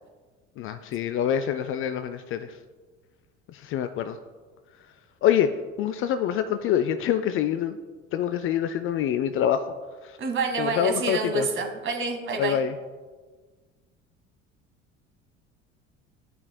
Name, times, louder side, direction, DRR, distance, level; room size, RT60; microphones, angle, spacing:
voice 1, 0.6-2.5 3.5-4.2 5.2-5.5 5.8-7.8 8.1-9.6 10.0-10.2 10.6-11.5 12.4-12.7, left 9 dB, 40° left, 11 dB, 0.4 m, -25 dB
voice 2, 10.2-12.6, right 4 dB, 35° right, 4 dB, 1.3 m, -28 dB
14.0 x 5.2 x 2.2 m, 1.4 s
figure-of-eight pair, 65°, 35 cm